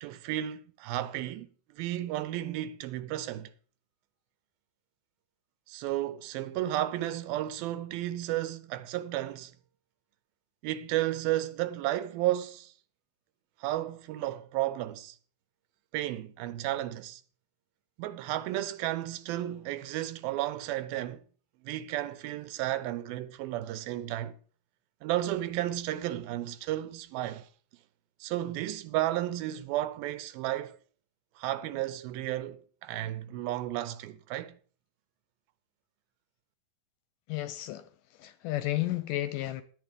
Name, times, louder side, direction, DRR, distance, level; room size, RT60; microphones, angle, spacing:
voice 1, 0.0-3.5 5.7-9.5 10.6-12.7 13.6-15.2 15.9-17.2 18.0-21.2 21.6-24.4 25.0-27.5 28.2-30.8 31.4-34.6, right 14 dB, 90° right, 2.6 m, -33 dB
voice 2, 37.3-39.6, left 15 dB, 80° left, 2.0 m, -33 dB
10.0 x 9.5 x 5.1 m
omnidirectional pair, 4.2 m